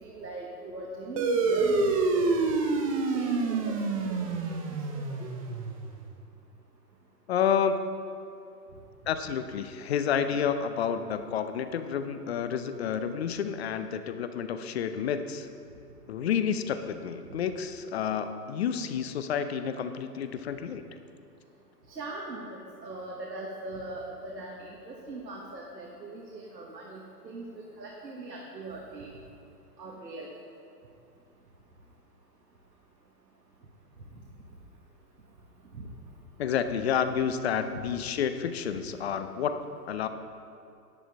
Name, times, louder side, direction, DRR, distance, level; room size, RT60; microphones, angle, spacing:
voice 1, 0.0-2.8 3.1-3.8 4.0-4.6 4.9-5.3 21.9-27.5 27.8-29.1 29.8-30.3 35.7-35.9, right 2 dB, 90° right, -2 dB, 1.4 m, -40 dB
sound 1, 1.2-6.0, right 3 dB, 20° right, 0.5 m, -27 dB
voice 2, 7.3-7.9 9.1-15.5 16.1-20.8 36.4-40.1, left 7 dB, 40° left, 10 dB, 0.6 m, -30 dB
11.0 x 9.0 x 3.5 m, 2.6 s
figure-of-eight pair, 125°, 49 cm